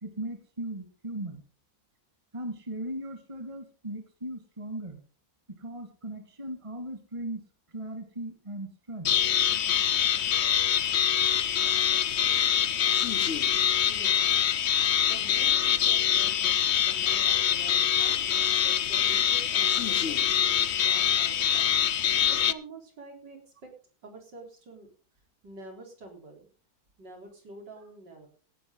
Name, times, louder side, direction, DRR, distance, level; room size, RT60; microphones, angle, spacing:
voice 1, 0.0-1.4 2.3-5.0 5.6-7.4 7.7-9.1 21.2-21.3, right 1 dB, 15° right, 6 dB, 2.1 m, -38 dB
sound 1, 9.0-22.5, left 9 dB, 70° left, 0.6 m, -24 dB
voice 2, 13.8-14.2 15.0-21.8 22.3-23.7 24.0-24.9 25.4-26.5 27.0-28.3, right 3 dB, 65° right, 2 dB, 4.6 m, -47 dB
17.0 x 11.5 x 3.9 m, 0.37 s
omnidirectional pair, 2.1 m